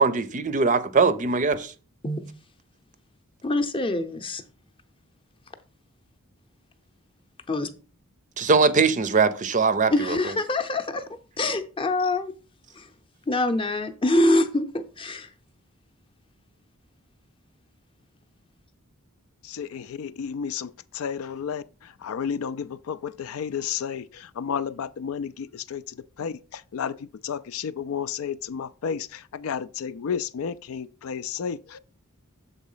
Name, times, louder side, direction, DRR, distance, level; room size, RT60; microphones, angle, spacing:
voice 1, 0.0-1.7 8.4-10.2, right 4 dB, 35° right, 0.5 m, -21 dB
voice 2, 3.4-4.4 7.5-7.7 9.9-11.0 11.4-12.3 12.8-12.9 13.3-15.3, left 2 dB, 25° left, 0.7 m, -24 dB
voice 3, 19.4-31.8, left 7 dB, 75° left, 0.4 m, -32 dB
7.3 x 3.9 x 5.5 m
head